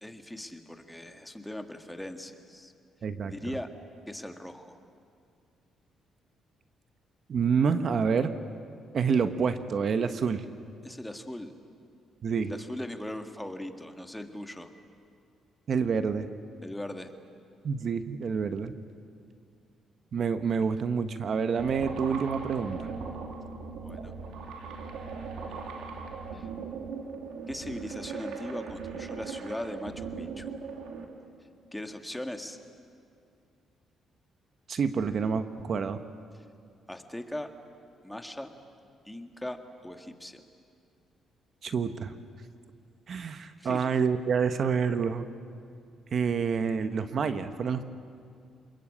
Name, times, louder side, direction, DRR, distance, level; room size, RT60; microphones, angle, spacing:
voice 1, 0.0-2.7 3.2-3.7 4.1-4.8 10.8-11.5 12.5-14.7 16.6-17.1 23.8-24.1 25.5-26.0 26.3-26.5 27.5-30.5 31.7-32.6 36.9-37.5 38.0-38.5 39.1-40.4 43.6-43.8, left 1 dB, 5° left, 6 dB, 1.9 m, -39 dB
voice 2, 3.0-3.5 7.3-8.4 8.9-10.4 12.2-12.5 15.7-16.3 17.6-18.7 20.1-22.9 34.7-36.0 41.6-42.1 43.1-45.2 46.1-47.8, right 6 dB, 55° right, 9 dB, 1.2 m, -28 dB
sound 1, 21.6-31.1, right 5 dB, 80° right, 2.9 m, -39 dB
28.0 x 21.0 x 8.7 m, 2.4 s
cardioid pair, 90°, 0 cm